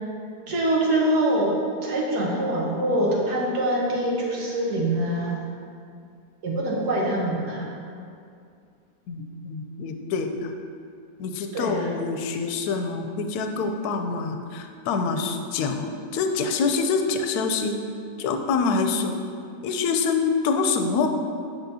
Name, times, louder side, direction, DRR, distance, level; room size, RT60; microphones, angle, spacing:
voice 1, 0.5-5.4 6.4-7.8 11.5-11.9, right 1 dB, 70° right, -3 dB, 1.6 m, -24 dB
voice 2, 7.2-7.5 9.1-10.5 11.2-17.8 18.2-19.2 19.6-21.1, left 4 dB, 70° left, 5 dB, 1.0 m, -26 dB
8.8 x 5.5 x 2.7 m, 2.4 s
omnidirectional pair, 1.8 m